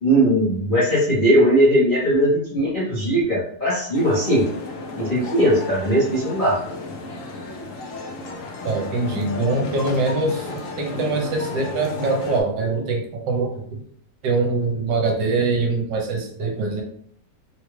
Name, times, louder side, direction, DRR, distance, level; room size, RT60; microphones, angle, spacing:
voice 1, 0.0-4.4 5.0-6.6, right 1 dB, 40° left, -8 dB, 0.7 m, -19 dB
sound 1, 3.9-12.4, left 3 dB, 80° left, 0.7 m, -33 dB
voice 2, 8.6-13.6 14.2-16.8, right 3 dB, 75° right, 2 dB, 1.3 m, -23 dB
3.5 x 2.3 x 3.1 m, 0.63 s
omnidirectional pair, 2.1 m